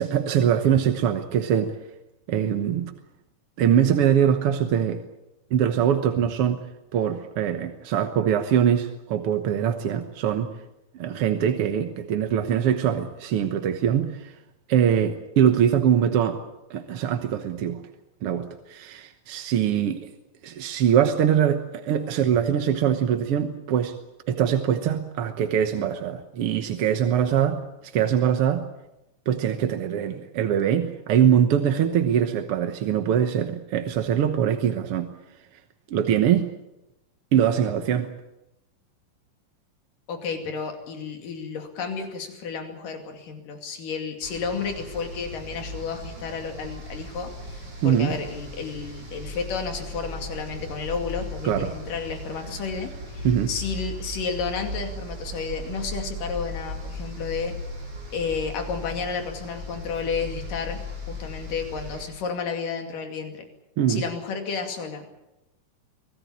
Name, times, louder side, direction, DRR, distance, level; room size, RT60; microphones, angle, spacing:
voice 1, 0.0-1.7 2.3-2.9 3.6-5.0 5.5-6.6 6.9-10.5 10.9-14.3 14.7-16.4 16.7-17.8 18.2-20.1 20.4-23.9 24.3-27.6 27.9-28.6 29.3-35.1 35.9-36.5 37.3-38.1 47.8-48.2 51.4-51.7 53.2-53.5 63.8-64.0, right 9 dB, 60° right, 7 dB, 1.7 m, -22 dB
voice 2, 40.1-57.5 58.1-60.8 61.1-63.5 63.9-65.1, left 5 dB, 85° left, 4 dB, 4.2 m, -32 dB
sound 1, 44.2-62.0, left 1 dB, 30° right, 5.9 m, -37 dB
25.0 x 18.0 x 8.6 m, 0.93 s
omnidirectional pair, 3.7 m